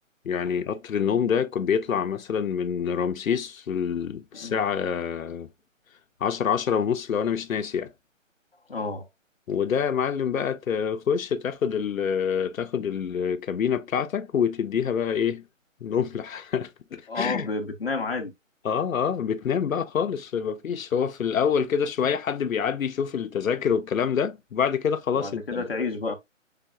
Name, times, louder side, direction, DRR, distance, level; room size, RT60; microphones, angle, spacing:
voice 1, 0.3-5.5 6.2-7.9 9.5-15.4 15.8-17.5 18.6-25.6, left 7 dB, 90° left, 0.6 m, -26 dB
voice 2, 8.7-9.1 17.1-18.3 25.1-26.1, left 3 dB, 45° left, 0.8 m, -30 dB
5.8 x 3.4 x 2.2 m
hypercardioid pair, 180°, 39 cm